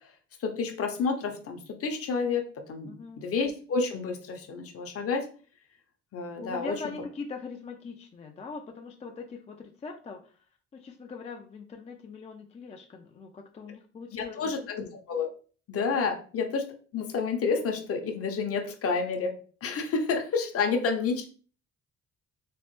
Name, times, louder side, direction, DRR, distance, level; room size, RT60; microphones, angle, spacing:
voice 1, 0.4-5.3 6.1-6.7 14.1-15.3 15.7-16.6 16.9-19.3 19.6-21.3, left 4 dB, 50° left, 4 dB, 0.7 m, -29 dB
voice 2, 2.8-3.3 6.4-10.3 10.7-14.4 14.8-14.9 20.6-20.9, left 4 dB, 25° left, 2 dB, 0.3 m, -41 dB
3.0 x 2.1 x 3.0 m, 0.41 s
cardioid pair, 90°, 30 cm